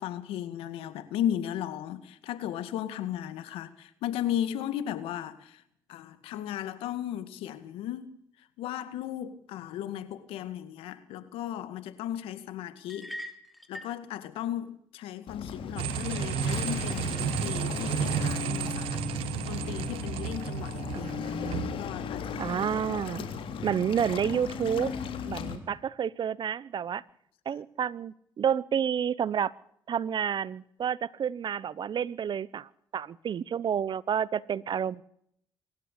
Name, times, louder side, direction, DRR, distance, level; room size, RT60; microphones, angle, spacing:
voice 1, 0.0-5.6 5.9-8.1 8.6-13.3 13.7-19.0 19.5-21.3 21.8-22.4 23.6-23.8, left 11 dB, 90° left, 2.1 m, -35 dB
sound 1, 12.9-14.0, equal, ahead, 3.1 m, -41 dB
Waves surf, 15.3-25.6, left 7 dB, 70° left, 3.4 m, -37 dB
sound 2, 15.8-21.7, right 8 dB, 85° right, 1.9 m, -32 dB
voice 2, 20.9-21.8 22.4-23.3 23.6-24.9 25.2-27.0 27.4-29.5 29.9-35.0, right 8 dB, 55° right, 1.0 m, -30 dB
25.5 x 12.5 x 8.4 m
supercardioid pair, 70°, 9 cm